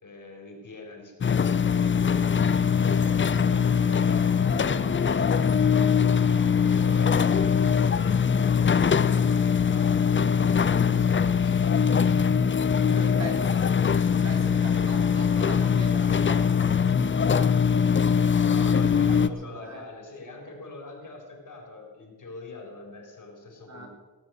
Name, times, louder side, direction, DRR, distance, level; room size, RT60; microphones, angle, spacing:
voice 1, 0.0-2.6 3.0-6.2 6.7-11.9 12.8-13.5 18.4-23.9, left 3 dB, 55° left, 1 dB, 4.6 m, -43 dB
sound 1, 1.2-19.3, left 6 dB, 30° left, 0.5 m, -22 dB
sound 2, 1.9-7.9, right 2 dB, 60° right, 3.7 m, -45 dB
voice 2, 12.7-13.6 14.1-18.0 18.8-19.8 23.7-23.9, right 2 dB, 45° right, 0 dB, 3.8 m, -42 dB
18.5 x 7.5 x 7.8 m, 1.3 s
cardioid pair, 90°, 38 cm